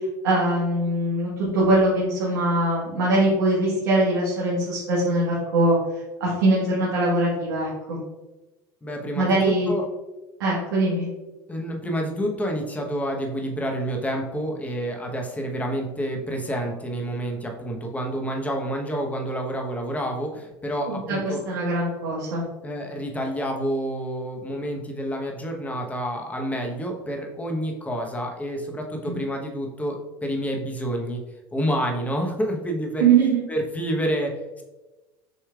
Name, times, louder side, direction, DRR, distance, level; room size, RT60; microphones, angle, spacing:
voice 1, 0.2-5.8 6.2-8.0 9.1-9.7 10.4-11.1 20.9-22.4 29.0-29.2 33.0-33.4, right 2 dB, 80° right, -6 dB, 1.4 m, -22 dB
voice 2, 8.8-9.9 11.5-21.4 22.6-31.2 31.5-33.1 33.5-34.6, equal, 15° left, 1 dB, 0.9 m, -28 dB
6.4 x 3.2 x 2.3 m, 1.1 s
hypercardioid pair, 85°, 11 cm